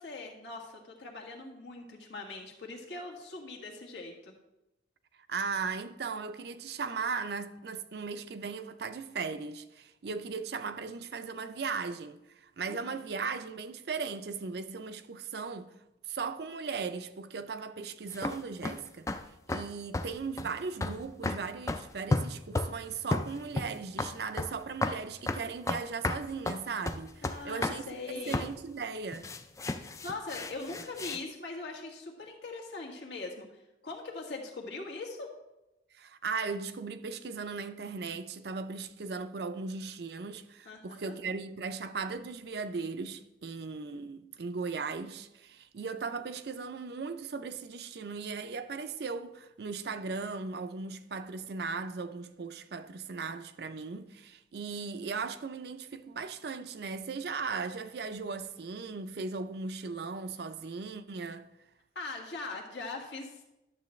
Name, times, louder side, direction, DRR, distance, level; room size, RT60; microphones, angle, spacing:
voice 1, 0.0-4.3 12.7-13.0 27.2-28.4 29.8-35.3 40.6-41.2 61.9-63.4, left 3 dB, 70° left, 1.7 m, -41 dB
voice 2, 5.3-15.7 16.1-19.1 19.5-27.9 28.2-29.3 35.9-61.5, right 5 dB, 60° right, 0.5 m, -37 dB
sound 1, 18.1-18.8 19.1-19.2 19.5-19.7 19.9-20.1 20.4-20.5 20.8-21.0 21.2-21.9 22.1-22.8 23.1-24.5 24.8-25.0 25.3-27.8 28.2-28.5 29.1-31.2, left 2 dB, 15° left, 0.3 m, -33 dB
11.5 x 7.3 x 3.2 m
head